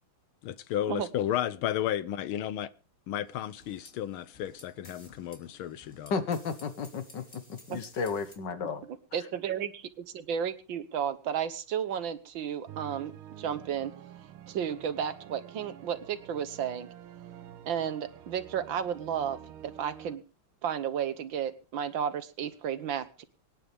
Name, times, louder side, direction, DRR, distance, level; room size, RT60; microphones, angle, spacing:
voice 1, 0.4-2.7 3.1-6.1, left 11 dB, 80° left, 1.7 m, -33 dB
sound 1, 3.2-8.3, left 1 dB, 35° left, 3.5 m, -55 dB
voice 2, 6.1-8.8, left 5 dB, 60° left, 1.9 m, -33 dB
voice 3, 9.1-13.1 13.4-13.9 14.5-16.9 17.7-20.2 20.6-23.2, right 8 dB, 70° right, 1.8 m, -33 dB
sound 2, 12.7-20.2, right 10 dB, 85° right, 1.9 m, -48 dB
25.0 x 10.0 x 3.5 m
omnidirectional pair, 2.3 m